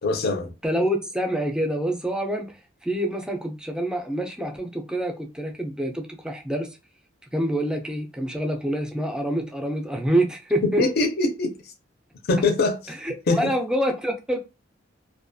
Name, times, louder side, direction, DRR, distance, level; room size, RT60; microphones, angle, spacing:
voice 1, 0.0-0.5 10.6-11.7 12.3-13.0 13.3-13.5, left 3 dB, 55° left, 0.5 m, -23 dB
voice 2, 0.6-2.5 2.8-6.7 7.3-10.8 13.0-14.4, right 1 dB, 5° right, 0.4 m, -26 dB
2.3 x 2.2 x 2.6 m
head